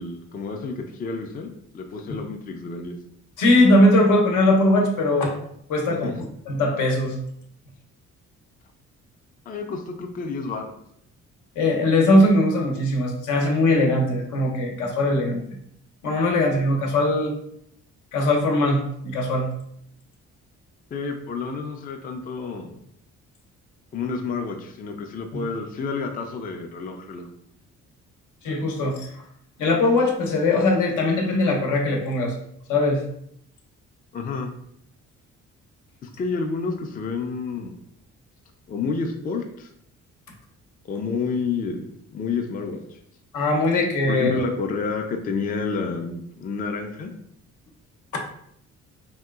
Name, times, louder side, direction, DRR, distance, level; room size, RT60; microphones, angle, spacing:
voice 1, 0.0-2.9 5.9-6.1 9.5-10.7 20.9-22.8 23.9-27.3 34.1-34.5 36.0-37.8 38.7-39.7 40.8-43.0 44.1-47.1, left 4 dB, 30° left, 3 dB, 0.4 m, -30 dB
voice 2, 3.4-5.3 5.7-6.1 6.5-7.2 11.6-15.4 16.0-17.4 18.1-19.5 25.3-25.4 28.4-29.1 29.6-32.3 32.7-33.0 43.3-44.4, left 1 dB, 80° left, 1 dB, 0.8 m, -20 dB
3.0 x 2.7 x 2.3 m, 0.71 s
cardioid pair, 90°, 30 cm